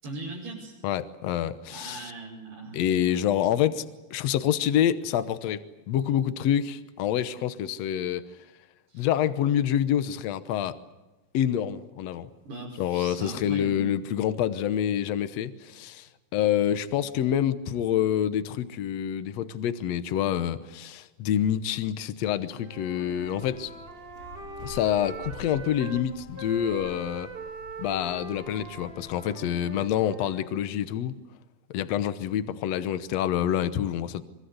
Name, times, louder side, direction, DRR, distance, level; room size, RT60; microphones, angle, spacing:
voice 1, 0.0-0.8 1.7-2.8 8.9-9.0 12.4-13.9, right 2 dB, 80° right, -4 dB, 7.7 m, -39 dB
voice 2, 0.8-2.1 2.7-3.8 4.1-8.2 8.9-10.8 11.3-12.3 12.8-23.7 24.6-27.3 27.8-31.2 31.7-34.2, left 10 dB, 85° left, 12 dB, 1.4 m, -27 dB
Wind instrument woodwind instrument, 22.5-26.0 26.3-30.6, right 2 dB, 40° right, 0.7 m, -42 dB
sound 1, 23.1-29.2, left 4 dB, 65° left, 3.8 m, -47 dB
25.0 x 24.5 x 8.1 m, 1.1 s
omnidirectional pair, 4.6 m